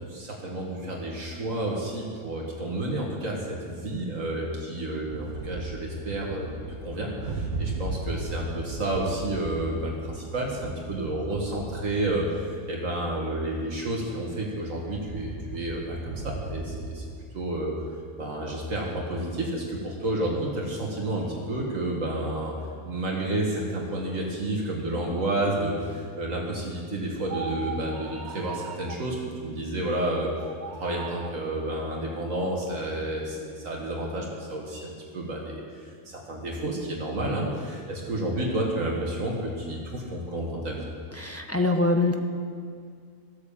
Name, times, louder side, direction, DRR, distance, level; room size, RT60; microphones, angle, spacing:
voice 1, 0.1-17.0 17.3-17.7 18.2-22.5 22.8-30.3 30.8-40.9, right 1 dB, 65° right, -2 dB, 1.9 m, -30 dB
sound 1, 5.1-13.8 14.3-14.4 14.6-17.1, right 2 dB, 90° right, 2.0 m, -37 dB
sound 2, 27.2-29.1 30.4-31.4, right 4 dB, 40° right, 0.9 m, -38 dB
voice 2, 41.1-42.1, left 2 dB, 20° left, 3 dB, 0.4 m, -24 dB
14.0 x 8.5 x 7.1 m, 2.2 s
omnidirectional pair, 1.5 m